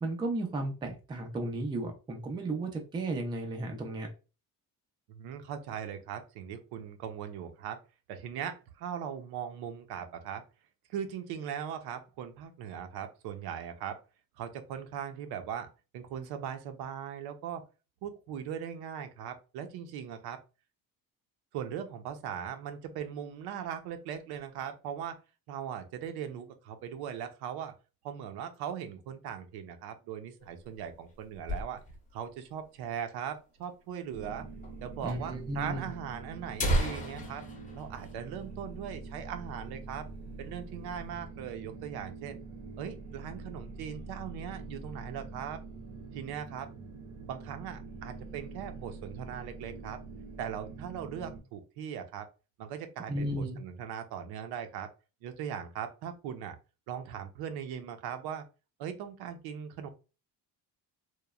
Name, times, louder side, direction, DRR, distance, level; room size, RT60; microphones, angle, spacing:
voice 1, 0.0-4.1 35.0-35.9 53.1-53.6, right 2 dB, 15° right, 3 dB, 0.3 m, -34 dB
voice 2, 5.1-7.8 8.1-10.4 10.9-14.0 14.4-15.7 15.9-17.7 18.0-20.4 21.5-25.2 25.5-27.7 28.0-31.8 32.1-34.5 34.8-37.4 37.7-40.1 40.4-42.4 42.8-45.6 46.1-46.7 47.3-50.0 50.4-52.3 52.6-54.9 55.2-56.6 56.9-58.5 58.8-59.9, right 8 dB, 90° right, 8 dB, 0.6 m, -39 dB
sound 1, 30.4-32.2 32.5-32.6 32.8-32.9 33.6-33.7 34.6-34.8 35.1-35.2 35.9-36.0 36.4-39.0 39.3-39.4 39.8-40.1 40.5-41.1, equal, 20° left, 0.6 m, -34 dB
sound 2, 34.1-51.4, right 3 dB, 50° right, 0.6 m, -45 dB
3.0 x 2.1 x 2.3 m, 0.31 s
cardioid pair, 165°, 37 cm